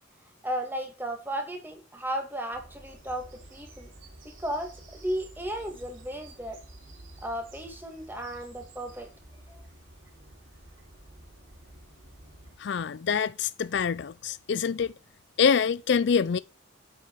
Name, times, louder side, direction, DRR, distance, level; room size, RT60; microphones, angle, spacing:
voice 1, 0.4-3.9 4.2-6.6 7.2-9.1 9.5-9.7, equal, 10° right, 2.1 m, -34 dB
Bird vocalization bird call bird song, 2.5-12.6, right 1 dB, 80° right, 3.9 m, -50 dB
voice 2, 12.6-14.9 15.4-16.4, left 6 dB, 60° left, 0.4 m, -25 dB
8.7 x 7.7 x 4.6 m
head